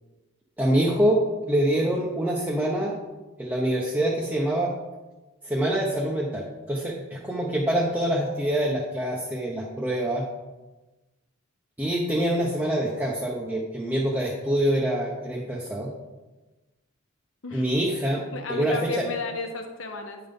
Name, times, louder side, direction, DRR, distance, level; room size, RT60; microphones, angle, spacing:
voice 1, 0.6-1.2 1.5-2.9 3.4-4.7 5.4-10.2 11.8-15.9 17.5-18.2 18.5-19.0, right 1 dB, 10° right, -4 dB, 0.8 m, -25 dB
voice 2, 18.3-20.2, left 4 dB, 70° left, 4 dB, 1.0 m, -33 dB
9.2 x 3.8 x 5.2 m, 1.1 s
head